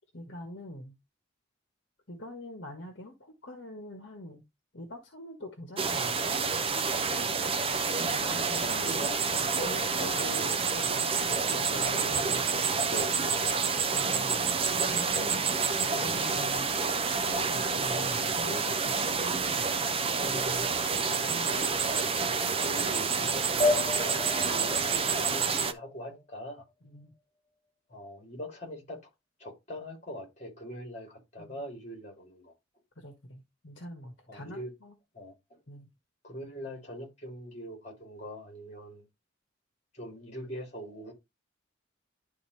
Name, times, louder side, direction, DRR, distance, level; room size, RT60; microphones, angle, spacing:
voice 1, 0.1-0.9 2.1-4.4 4.7-6.4 8.0-9.0 9.3-12.4 12.7-13.5 13.9-14.4 14.8-16.7 17.2-19.8 20.2-20.7 26.8-27.1 31.4-31.6 33.0-34.9 35.7-35.9, left 1 dB, 60° left, 1.4 m, -43 dB
sound 1, 5.8-25.7, right 5 dB, 30° right, 0.5 m, -28 dB
voice 2, 7.2-7.6 8.2-9.4 10.1-10.3 21.1-21.8 22.2-26.6 27.9-29.1 29.4-32.5 34.3-34.7 35.1-35.3 36.2-39.0 39.9-41.1, equal, 35° left, 2.9 m, -43 dB
sound 2, 23.6-26.6, left 3 dB, 5° left, 3.2 m, -32 dB
11.0 x 4.0 x 3.3 m
head